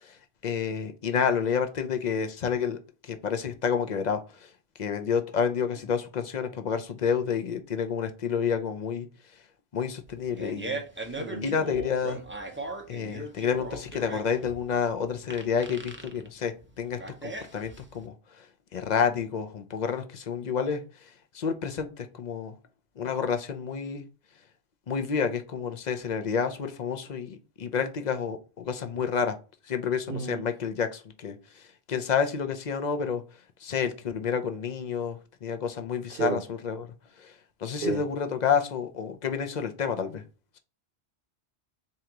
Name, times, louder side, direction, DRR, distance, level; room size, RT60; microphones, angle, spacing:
voice 1, 0.0-4.5 4.8-9.1 9.7-10.8 11.1-12.2 12.9-18.5 18.7-22.6 23.0-24.0 24.9-29.4 29.6-33.2 33.6-36.9 37.2-37.3 37.6-40.2, left 6 dB, 50° left, 0.6 m, -29 dB
Fart, 10.1-18.0, right 2 dB, 20° right, 0.3 m, -38 dB
voice 2, 11.2-11.5 30.1-30.4 36.1-36.4 37.8-38.0, right 4 dB, 55° right, 1.0 m, -31 dB
3.7 x 2.9 x 4.5 m
omnidirectional pair, 1.1 m